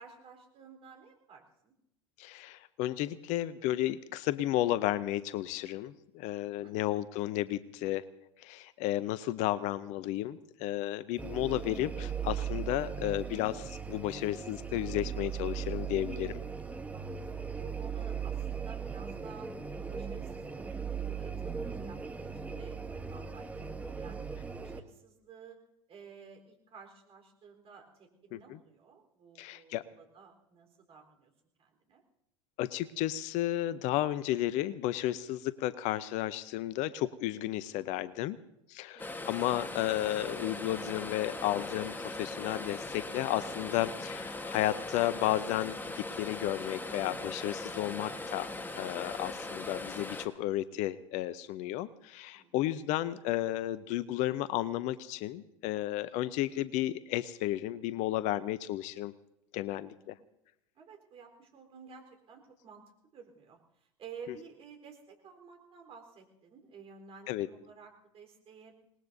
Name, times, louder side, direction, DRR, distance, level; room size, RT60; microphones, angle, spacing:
voice 1, 0.0-1.7 6.5-6.8 16.9-19.5 19.8-24.3 24.6-25.6 25.9-31.3 31.6-32.0 38.9-39.2 52.3-53.3 59.5-60.2 60.8-62.8 63.1-68.8, right 6 dB, 35° right, 3 dB, 4.0 m, -53 dB
voice 2, 2.2-8.0 8.4-16.4 28.3-28.6 29.4-29.8 32.6-38.4 38.7-59.1 59.5-60.1 67.3-67.5, left 14 dB, 50° left, 17 dB, 0.7 m, -33 dB
sound 1, 11.2-24.8, right 6 dB, 10° right, 1.1 m, -38 dB
sound 2, 39.0-50.3, left 2 dB, 10° left, 1.4 m, -40 dB
26.5 x 19.5 x 2.7 m, 0.80 s
figure-of-eight pair, 80°, 16 cm